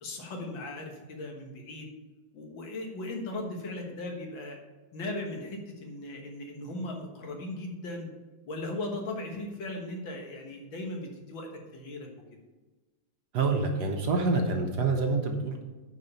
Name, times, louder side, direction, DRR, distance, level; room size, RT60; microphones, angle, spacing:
voice 1, 0.0-1.9 2.3-4.6 4.9-8.1 8.5-12.1, left 2 dB, 70° left, 1 dB, 2.1 m, -38 dB
voice 2, 13.3-15.6, right 3 dB, 60° right, 3 dB, 1.4 m, -27 dB
9.5 x 5.0 x 5.6 m, 1.2 s
omnidirectional pair, 2.2 m